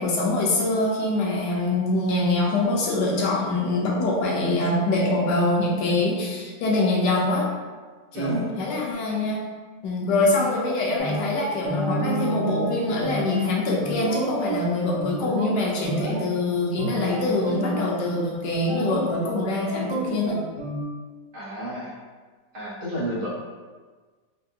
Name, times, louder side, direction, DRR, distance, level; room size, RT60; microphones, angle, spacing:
voice 1, 0.0-7.5 8.1-9.4 9.8-20.4, left 2 dB, 90° left, -3 dB, 1.3 m, -24 dB
voice 2, 8.1-8.5 10.4-10.6 21.3-21.9 22.5-23.3, right 1 dB, 50° right, -7 dB, 1.4 m, -31 dB
sound 1, 11.0-11.3 11.6-14.6 15.0-15.5 15.8-16.3 16.8-17.8 18.5-19.4 19.7-20.8, right 1 dB, 25° left, 0.9 m, -29 dB
4.4 x 2.4 x 2.8 m, 1.4 s
omnidirectional pair, 1.7 m